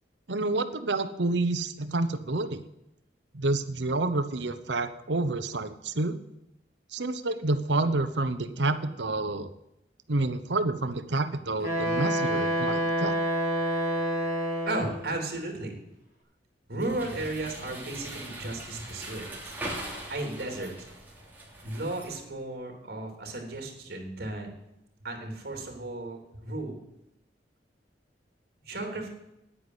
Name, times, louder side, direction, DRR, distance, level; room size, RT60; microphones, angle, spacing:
voice 1, 0.3-2.6 3.3-6.2 6.9-9.5 10.1-13.2, right 2 dB, 85° right, 12 dB, 1.0 m, -28 dB
Wind instrument woodwind instrument, 11.6-15.1, equal, 55° left, 5.3 m, -28 dB
voice 2, 14.7-15.8 16.7-19.6 20.1-20.9 21.6-24.5 25.0-26.8 28.6-29.1, right 2 dB, 60° right, 3 dB, 3.4 m, -34 dB
sound 1, 16.8-22.2, right 1 dB, 10° right, 3.1 m, -41 dB
10.0 x 9.5 x 8.0 m, 0.86 s
head